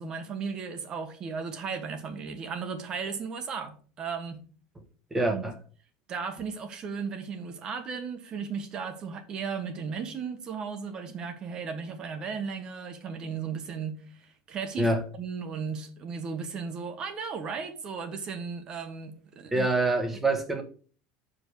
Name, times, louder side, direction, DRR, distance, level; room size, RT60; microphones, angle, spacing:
voice 1, 0.0-4.4 5.3-5.4 6.1-19.7, right 5 dB, 30° right, 1.3 m, -35 dB
voice 2, 5.1-5.5 14.8-15.0 19.5-20.6, right 2 dB, 10° right, 1.3 m, -25 dB
6.6 x 5.2 x 6.3 m
supercardioid pair, 155°, 3 cm